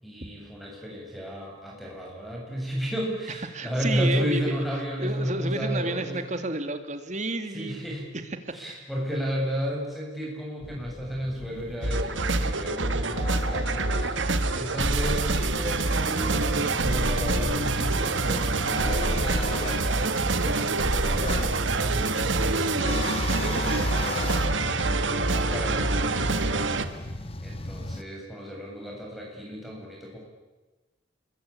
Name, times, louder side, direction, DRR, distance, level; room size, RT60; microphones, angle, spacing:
voice 1, 0.0-6.2 7.5-8.1 8.5-14.2 14.5-23.0 23.3-26.8 27.4-30.2, equal, ahead, -3 dB, 7.7 m, -33 dB
voice 2, 3.5-4.6 5.0-7.8 8.1-8.5, right 2 dB, 40° right, 9 dB, 2.1 m, -31 dB
sound 1, 10.6-28.0, left 2 dB, 30° left, 0.9 m, -38 dB
sound 2, 11.8-26.9, right 3 dB, 80° right, 1.7 m, -26 dB
28.5 x 22.0 x 8.6 m, 1.2 s
head